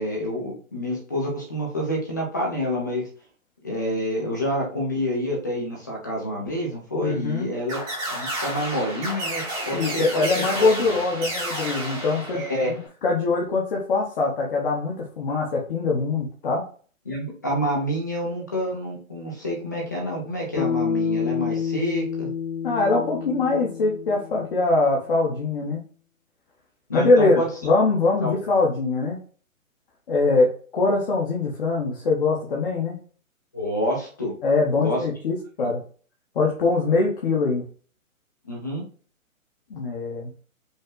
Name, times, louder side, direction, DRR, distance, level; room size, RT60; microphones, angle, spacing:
voice 1, 0.0-3.0 3.6-10.2 10.5-11.0 12.3-12.7 17.1-22.3 26.9-27.5 28.2-28.4 33.5-34.3 34.8-35.0 35.6-35.7 38.4-38.8, equal, 15° left, -2 dB, 0.5 m, -28 dB
voice 2, 7.0-7.5 9.7-16.6 22.6-25.8 26.9-29.2 30.1-33.0 34.4-35.8 36.3-37.6 39.7-40.3, left 3 dB, 40° left, -2 dB, 0.9 m, -23 dB
sound 1, 7.7-12.8, right 1 dB, 10° right, 0.8 m, -31 dB
Bass guitar, 20.6-25.0, left 7 dB, 80° left, 0.8 m, -28 dB
5.3 x 2.1 x 3.7 m, 0.41 s
hypercardioid pair, 155°, 42 cm